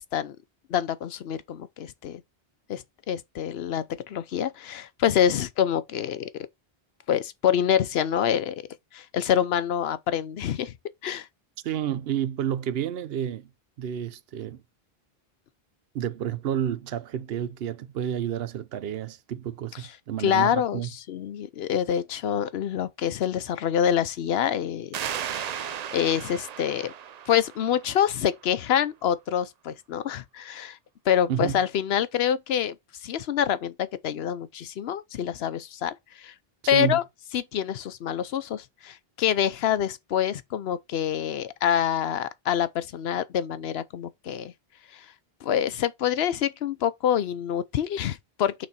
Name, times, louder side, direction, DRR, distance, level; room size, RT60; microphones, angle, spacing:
voice 1, 0.7-2.2 2.7-6.3 7.1-8.6 8.9-10.7 11.0-11.3 20.2-24.9 25.3-26.9 27.3-30.8 31.1-32.7 33.0-36.3 36.7-37.0 37.3-44.5 44.9-45.1 45.4-48.7, left 9 dB, 80° left, 0.9 m, -26 dB
voice 2, 11.6-13.5 13.8-14.6 15.9-20.9 31.3-31.6 36.7-37.0, right 10 dB, 75° right, 0.8 m, -30 dB
sound 1, 24.9-28.3, right 9 dB, 55° right, 0.5 m, -35 dB
6.0 x 4.2 x 4.2 m
omnidirectional pair, 1.0 m